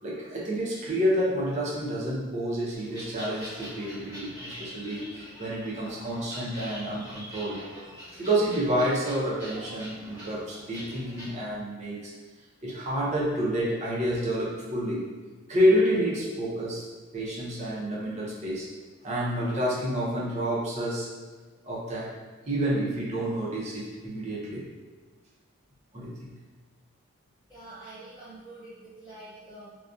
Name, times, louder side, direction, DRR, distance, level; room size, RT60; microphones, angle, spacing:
voice 1, 0.0-7.9 8.2-12.1 12.6-15.1 15.5-16.9 17.1-18.7 19.0-21.1 21.6-22.1 22.4-24.6 25.9-26.3, equal, 30° right, -6 dB, 0.5 m, -29 dB
sound 1, 2.7-11.3, equal, 15° left, 0.9 m, -44 dB
voice 2, 27.5-29.7, right 2 dB, 15° right, -14 dB, 1.2 m, -46 dB
2.4 x 2.1 x 2.5 m, 1.4 s
head